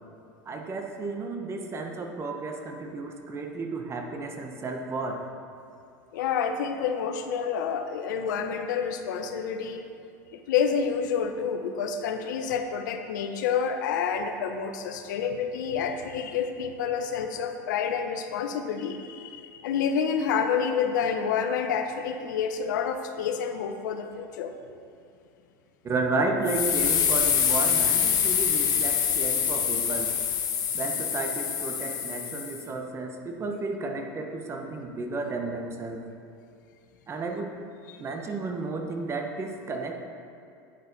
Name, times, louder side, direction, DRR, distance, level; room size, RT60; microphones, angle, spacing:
voice 1, 0.4-5.2 25.8-30.1 30.7-36.0 37.1-37.5 38.0-39.9, right 3 dB, 25° right, 3 dB, 1.3 m, -32 dB
voice 2, 6.1-9.8 10.3-24.5 37.9-38.0, left 7 dB, 80° left, 6 dB, 0.9 m, -28 dB
sound 1, 26.5-32.6, left 8 dB, 40° left, 1.6 m, -25 dB
10.5 x 9.3 x 4.2 m, 2.5 s
supercardioid pair, 110°, 10 cm